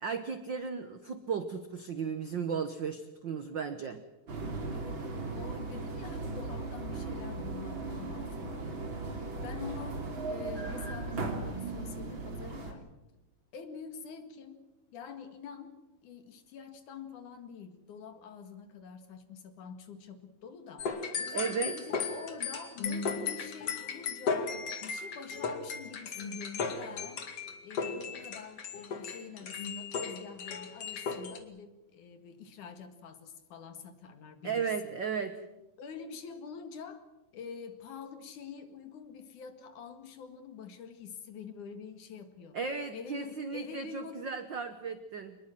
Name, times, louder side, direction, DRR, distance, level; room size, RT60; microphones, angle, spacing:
voice 1, 0.0-4.0 21.3-21.8 34.4-35.4 42.5-45.4, right 6 dB, 80° right, 10 dB, 1.0 m, -35 dB
sound 1, 4.3-12.7, right 3 dB, 35° right, 3.5 m, -37 dB
voice 2, 4.7-12.8 13.5-14.6 14.9-24.5 24.8-27.3 27.6-34.9 35.8-37.1 37.3-42.6 42.9-44.3, left 6 dB, 65° left, 8 dB, 3.3 m, -46 dB
sound 2, 20.8-31.4, left 5 dB, 50° left, 2.9 m, -36 dB
24.5 x 21.0 x 7.7 m, 0.98 s
omnidirectional pair, 3.9 m